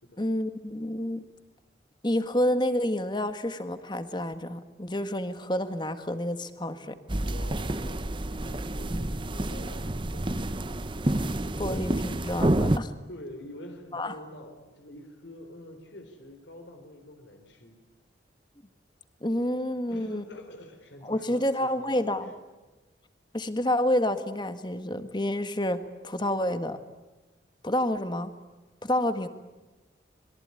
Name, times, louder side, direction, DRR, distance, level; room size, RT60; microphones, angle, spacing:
voice 1, 0.2-1.2 2.0-7.0 11.1-12.9 13.9-14.1 19.2-20.2 21.0-22.3 23.3-26.8 27.6-28.3 28.8-29.3, left 1 dB, 25° left, 10 dB, 1.5 m, -29 dB
sound 1, 7.1-12.8, right 1 dB, 25° right, 0.8 m, -29 dB
voice 2, 7.2-10.5 13.1-17.8 19.9-22.3 29.2-29.3, left 1 dB, 80° left, 5 dB, 4.1 m, -47 dB
26.5 x 22.0 x 9.8 m, 1.2 s
head